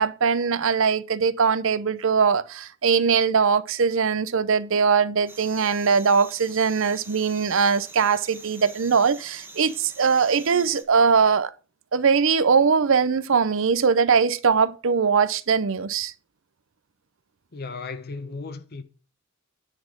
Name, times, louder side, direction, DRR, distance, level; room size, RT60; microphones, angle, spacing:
voice 1, 0.0-11.5 11.9-16.1, right 5 dB, 65° right, 0.6 m, -21 dB
sound 1, 5.3-10.8, right 3 dB, 10° right, 1.2 m, -45 dB
voice 2, 17.5-18.8, left 4 dB, 50° left, 0.8 m, -35 dB
10.0 x 4.2 x 7.5 m
head